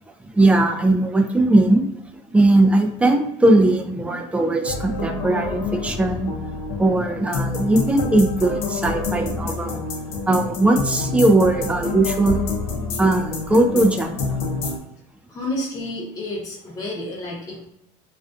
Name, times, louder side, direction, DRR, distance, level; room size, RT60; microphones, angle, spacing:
voice 1, 0.3-1.8 2.3-6.3 6.8-9.8 10.3-12.5 13.0-14.4, right 2 dB, 10° right, 4 dB, 0.3 m, -19 dB
sound 1, 4.7-14.8, left 4 dB, 75° left, 0.6 m, -28 dB
voice 2, 15.3-17.7, left 1 dB, 25° left, -5 dB, 0.8 m, -30 dB
2.4 x 2.3 x 2.5 m, 0.84 s
supercardioid pair, 110°, 15 cm